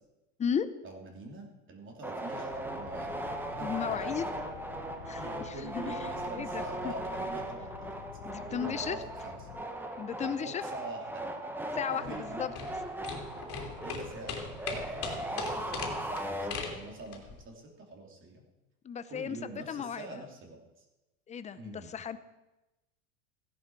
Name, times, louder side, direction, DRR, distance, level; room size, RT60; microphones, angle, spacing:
voice 1, 0.8-3.1 3.5-4.3 5.2-8.0 8.3-9.4 10.4-11.2 11.9-12.6 13.8-18.4 19.1-20.9 21.6-21.9, right 2 dB, 30° right, 1 dB, 3.0 m, -45 dB
sound 1, 2.0-17.0, right 1 dB, 5° right, 1.5 m, -38 dB
sound 2, 2.5-9.6, left 10 dB, 80° left, 1.1 m, -49 dB
voice 2, 3.6-4.4 5.1-5.2 5.6-6.0 6.3-6.9 8.2-9.0 10.0-10.6 11.7-12.5 18.8-20.2 21.3-22.2, left 7 dB, 20° left, 12 dB, 0.7 m, -35 dB
sound 3, 12.0-17.4, left 5 dB, 35° left, 2.8 m, -39 dB
16.0 x 10.5 x 4.7 m, 1.0 s
supercardioid pair, 120°, 39 cm